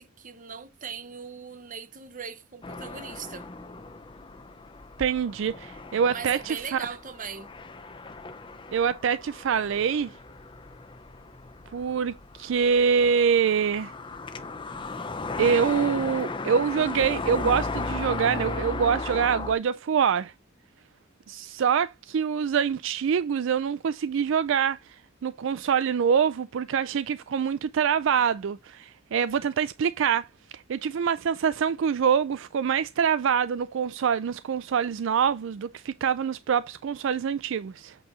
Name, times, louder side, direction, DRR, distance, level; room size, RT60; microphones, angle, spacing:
voice 1, 0.0-3.5 6.0-7.5, right 6 dB, 40° right, 0.9 m, -39 dB
sound 1, 2.6-19.5, left 3 dB, 25° left, 0.8 m, -36 dB
voice 2, 5.0-6.8 8.7-10.2 11.7-13.9 15.4-20.3 21.3-30.3 30.5-38.0, right 7 dB, 65° right, 0.4 m, -25 dB
8.4 x 4.5 x 3.1 m
head